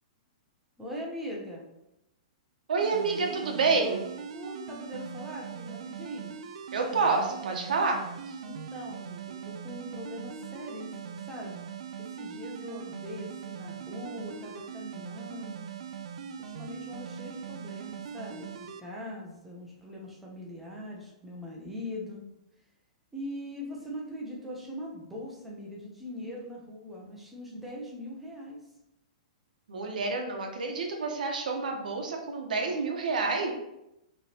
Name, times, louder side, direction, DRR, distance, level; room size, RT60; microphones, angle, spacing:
voice 1, 0.8-1.7 4.3-6.4 8.4-11.6 12.0-15.6 16.4-22.2 23.1-28.7, left 1 dB, 5° right, -3 dB, 0.6 m, -41 dB
voice 2, 2.7-4.1 6.7-8.0 29.7-33.5, right 4 dB, 85° right, 2 dB, 1.1 m, -28 dB
sound 1, 2.8-18.8, right 8 dB, 50° right, 0.4 m, -41 dB
5.3 x 3.2 x 2.8 m, 0.86 s
hypercardioid pair, 180°, 4 cm